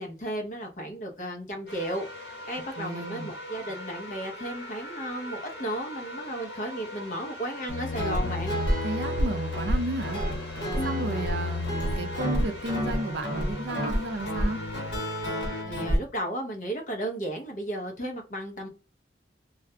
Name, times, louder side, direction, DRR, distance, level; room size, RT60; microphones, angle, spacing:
voice 1, 0.0-8.6 10.7-11.1 15.7-18.7, right 1 dB, 45° left, 0.7 m, -34 dB
sound 1, 1.7-15.6, left 1 dB, 60° left, 1.1 m, -41 dB
voice 2, 2.8-3.3 8.8-10.2 10.7-14.6, right 2 dB, 70° right, 0.5 m, -33 dB
Guitar, 7.7-16.0, equal, 80° left, 1.3 m, -29 dB
2.4 x 2.1 x 2.7 m
head